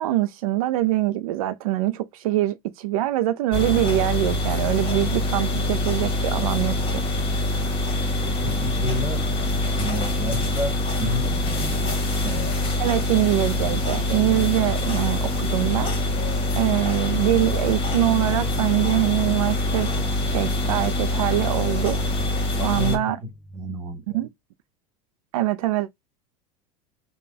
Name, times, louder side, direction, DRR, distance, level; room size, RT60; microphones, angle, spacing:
voice 1, 0.0-7.0 12.8-15.9 16.5-19.9 20.3-22.0 22.6-23.2 24.1-24.3 25.3-25.9, right 15 dB, 85° right, 0.4 m, -24 dB
sound 1, 3.5-23.0, left 1 dB, 30° left, 1.4 m, -24 dB
voice 2, 8.4-9.3 9.8-12.5 22.6-24.2, left 1 dB, 15° right, 1.9 m, -31 dB
3.4 x 2.2 x 4.0 m
supercardioid pair, 105°, 18 cm